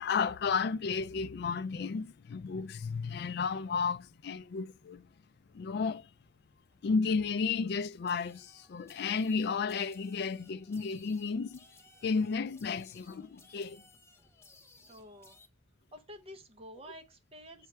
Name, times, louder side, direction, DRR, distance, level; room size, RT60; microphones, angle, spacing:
voice 1, 0.0-5.1 5.5-6.1 6.8-11.6 12.0-13.8, left 5 dB, 55° left, 0.3 m, -33 dB
sound 1, 8.1-15.5, left 3 dB, 15° left, 0.7 m, -60 dB
voice 2, 14.9-15.4 15.9-17.7, equal, 30° right, 0.9 m, -50 dB
6.5 x 4.5 x 3.3 m
head